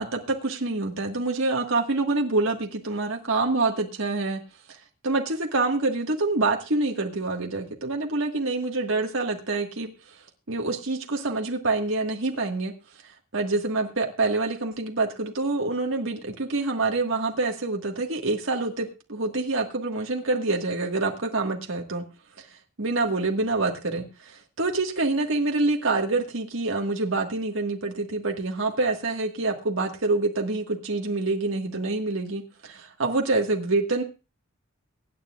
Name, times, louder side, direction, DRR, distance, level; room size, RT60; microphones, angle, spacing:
voice 1, 0.0-4.4 4.7-4.8 5.0-10.2 10.5-12.7 13.3-22.1 22.8-34.0, right 3 dB, 75° right, 2 dB, 1.6 m, -26 dB
23.5 x 9.8 x 2.4 m, 0.31 s
head